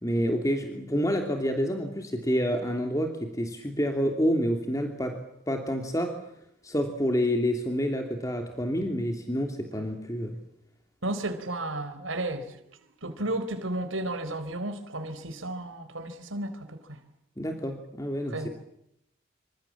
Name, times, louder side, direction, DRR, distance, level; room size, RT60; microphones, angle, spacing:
voice 1, 0.0-5.2 5.5-6.2 6.6-10.4 17.4-18.4, equal, 15° left, 3.0 m, -28 dB
voice 2, 11.0-17.0 18.3-18.5, right 1 dB, 90° right, 4.1 m, -33 dB
28.0 x 26.5 x 7.4 m
head